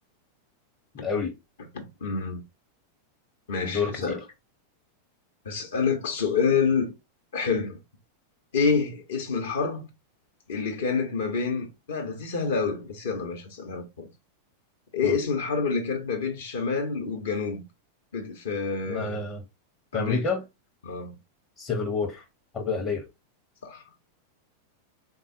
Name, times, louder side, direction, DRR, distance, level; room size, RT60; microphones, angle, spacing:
voice 1, 1.0-1.3 3.6-4.2 15.0-15.2 18.9-19.4 19.9-20.4 21.6-22.2 22.5-23.1, left 4 dB, 30° left, 0.7 m, -28 dB
voice 2, 1.7-2.4 3.5-4.2 5.5-6.9 7.3-7.8 8.5-9.9 10.5-14.1 14.9-17.6 18.1-19.2 19.9-20.3 20.8-21.2 23.6-23.8, left 5 dB, 60° left, 0.8 m, -28 dB
3.5 x 2.3 x 2.6 m
figure-of-eight pair, 90°, 0 cm